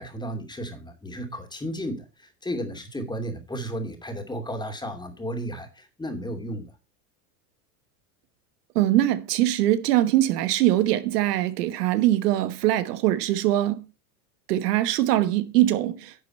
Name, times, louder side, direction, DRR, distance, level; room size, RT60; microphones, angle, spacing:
voice 1, 0.0-6.7, equal, 10° left, 2.6 m, -33 dB
voice 2, 8.7-13.8 14.5-16.1, right 14 dB, 75° right, 1.2 m, -22 dB
11.0 x 6.9 x 4.2 m
supercardioid pair, 110°, 47 cm